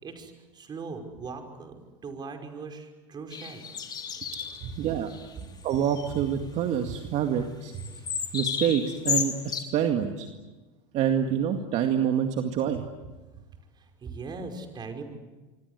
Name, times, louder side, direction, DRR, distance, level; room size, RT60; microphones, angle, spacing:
voice 1, 0.0-3.7 7.9-8.0 13.8-15.0, right 4 dB, 30° right, 5 dB, 5.5 m, -40 dB
sound 1, 3.3-4.7 5.1-5.3 5.6-6.2 7.7-9.6, left 7 dB, 25° left, 3.3 m, -32 dB
voice 2, 4.6-5.1 5.6-7.7 8.3-10.3 10.9-12.8, right 9 dB, 50° right, 5 dB, 2.2 m, -26 dB
27.0 x 24.5 x 8.3 m, 1.2 s
supercardioid pair, 110°, 15 cm